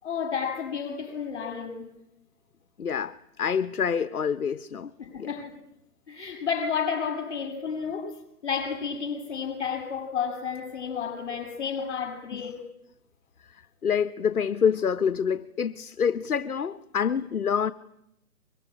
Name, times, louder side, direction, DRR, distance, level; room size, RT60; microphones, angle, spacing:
voice 1, 0.0-1.9 5.0-5.5 6.1-12.6, left 6 dB, 50° left, 7.5 m, -31 dB
voice 2, 2.8-4.9 5.2-5.3 12.4-12.5 13.5-17.7, left 7 dB, 70° left, 1.2 m, -27 dB
24.0 x 24.0 x 10.0 m
figure-of-eight pair, 145°, 45 cm